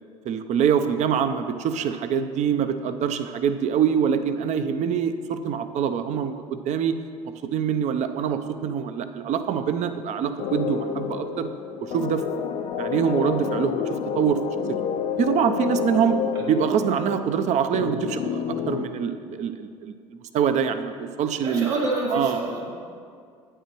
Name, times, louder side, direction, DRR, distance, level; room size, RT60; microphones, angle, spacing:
voice 1, 0.3-7.0 7.5-11.5 11.8-12.2 12.8-13.8 14.1-14.4 15.2-16.2 16.5-19.9 20.3-21.7 22.1-22.4, right 7 dB, 50° right, 9 dB, 0.6 m, -24 dB
sound 1, 10.4-18.9, left 7 dB, 55° left, 0.5 m, -29 dB
voice 2, 21.4-22.7, right 2 dB, 80° right, -4 dB, 2.0 m, -27 dB
10.0 x 8.9 x 3.0 m, 2.2 s
hypercardioid pair, 70°, 15 cm